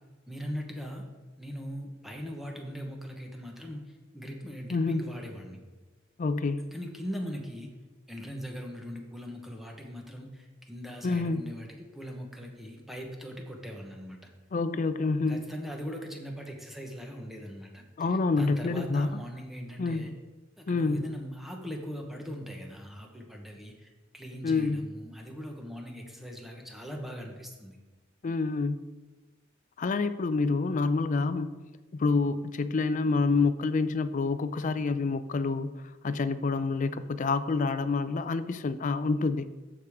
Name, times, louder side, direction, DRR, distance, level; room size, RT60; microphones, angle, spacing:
voice 1, 0.3-1.1 1.4-5.6 6.7-7.7 8.1-14.3 15.3-20.1 20.6-27.8, equal, ahead, 1 dB, 1.0 m, -40 dB
voice 2, 4.7-5.0 6.2-6.7 11.0-11.6 14.5-15.5 18.0-19.1 19.8-20.1 20.7-21.0 24.4-24.9 28.2-28.9 29.8-31.5 31.9-35.7 36.0-39.5, left 3 dB, 40° left, 12 dB, 0.4 m, -27 dB
13.0 x 4.9 x 3.5 m, 1.2 s
head